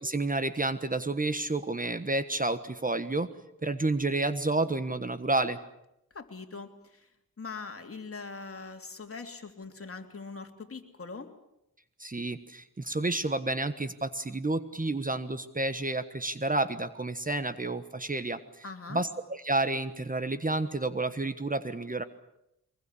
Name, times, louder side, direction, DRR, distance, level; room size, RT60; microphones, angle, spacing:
voice 1, 0.0-3.3 3.6-5.6 12.0-18.6 18.9-22.0, right 2 dB, 25° right, 12 dB, 1.3 m, -30 dB
voice 2, 6.1-7.1 7.4-11.3 18.6-19.0, left 4 dB, 40° left, 5 dB, 3.1 m, -42 dB
23.5 x 21.0 x 8.4 m, 0.83 s
cardioid pair, 75°, 33 cm